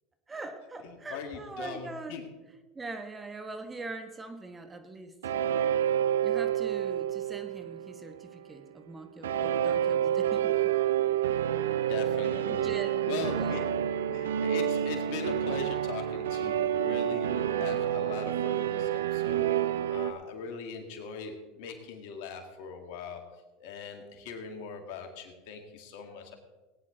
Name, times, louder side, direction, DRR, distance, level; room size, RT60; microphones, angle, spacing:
voice 1, 0.3-2.2 2.7-5.1 6.2-10.7 12.5-13.1 13.3-13.6, right 3 dB, 15° right, 7 dB, 1.3 m, -42 dB
voice 2, 0.8-2.3 11.6-12.7 13.1-13.6 14.1-19.5 19.9-26.4, left 5 dB, 65° left, 4 dB, 2.2 m, -40 dB
sound 1, 5.2-8.4 9.2-20.1, right 10 dB, 85° right, 0.6 m, -29 dB
18.5 x 9.8 x 3.9 m, 1.2 s
hypercardioid pair, 95°, 0 cm